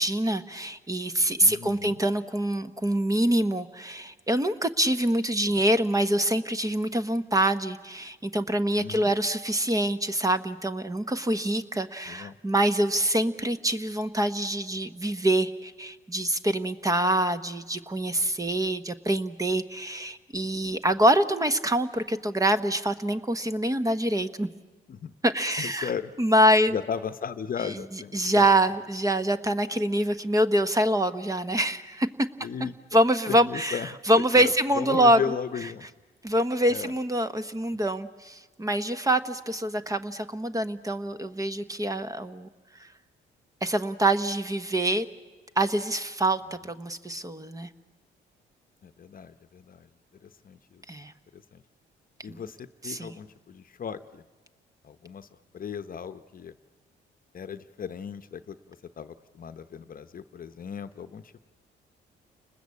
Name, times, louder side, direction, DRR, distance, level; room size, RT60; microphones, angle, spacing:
voice 1, 0.0-24.5 25.2-25.9 26.2-26.8 27.6-27.7 28.1-32.1 32.9-35.4 36.2-42.5 42.8-42.9 43.6-45.1 45.6-47.7 50.9-51.1 52.3-52.4 52.8-53.1, right 1 dB, 15° right, 10 dB, 1.1 m, -25 dB
voice 2, 1.4-2.0 5.5-5.6 8.8-9.1 12.1-12.4 18.2-18.5 24.9-25.1 25.6-26.1 26.7-28.5 32.4-33.0 33.3-33.9 34.1-35.9 36.7-36.9 37.7-37.8 48.8-49.9 50.4-50.8 51.3-51.6 52.2-54.2 54.8-55.3 55.5-56.6 57.3-58.6 59.0-61.4, left 7 dB, 45° left, 11 dB, 0.9 m, -36 dB
30.0 x 20.5 x 8.4 m, 1.3 s
cardioid pair, 90°, 20 cm